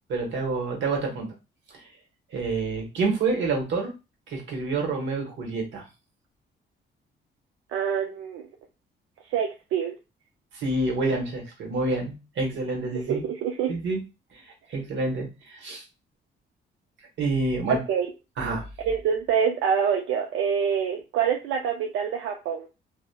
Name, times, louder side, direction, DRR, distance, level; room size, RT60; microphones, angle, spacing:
voice 1, 0.1-1.3 2.3-3.9 4.3-5.9 10.5-13.2 13.7-14.0 14.7-15.8 17.2-17.8 18.4-18.6, right 3 dB, 70° right, 1 dB, 1.1 m, -27 dB
voice 2, 7.7-8.5 9.3-10.0 12.9-13.7 17.7-18.1 18.8-22.7, right 7 dB, 85° right, 2 dB, 0.4 m, -26 dB
2.8 x 2.1 x 2.2 m, 0.28 s
cardioid pair, 90°, 20 cm